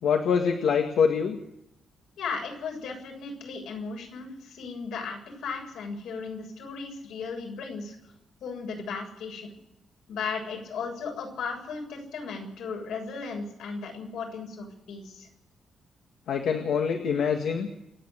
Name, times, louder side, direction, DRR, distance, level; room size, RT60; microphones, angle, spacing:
voice 1, 0.0-1.4 16.3-17.7, left 6 dB, 70° left, 3 dB, 2.0 m, -24 dB
voice 2, 2.2-8.0 8.4-9.6 10.1-15.3, left 5 dB, 85° left, 2 dB, 7.4 m, -36 dB
28.0 x 9.9 x 9.8 m, 0.82 s
wide cardioid pair, 175°, 0 cm